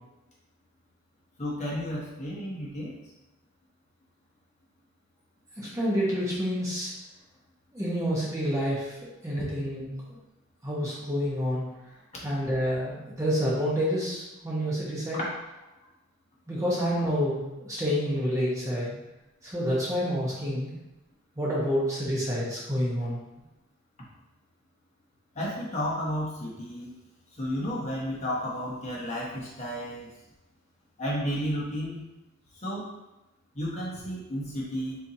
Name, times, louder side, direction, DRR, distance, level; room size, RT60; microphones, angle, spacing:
voice 1, 1.4-3.0 15.2-15.3 25.3-26.9 27.4-30.1 31.0-32.0 32.6-32.9 33.5-35.0, equal, 30° left, -5 dB, 1.0 m, -32 dB
voice 2, 5.6-6.9 7.7-8.9 9.2-9.9 10.6-11.6 12.2-15.2 16.5-19.0 19.4-20.8 21.4-23.2, equal, 15° right, -6 dB, 1.0 m, -28 dB
4.4 x 4.0 x 2.8 m, 0.99 s
head